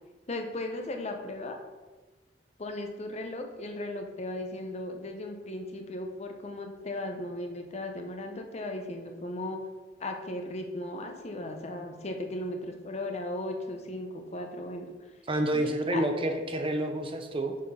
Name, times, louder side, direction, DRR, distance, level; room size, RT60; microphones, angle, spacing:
voice 1, 0.3-1.6 2.6-9.6 10.0-14.9 15.5-16.1, left 1 dB, 40° left, 4 dB, 0.7 m, -36 dB
voice 2, 15.3-17.6, right 1 dB, 30° right, 5 dB, 0.6 m, -29 dB
6.3 x 4.3 x 5.5 m, 1.3 s
head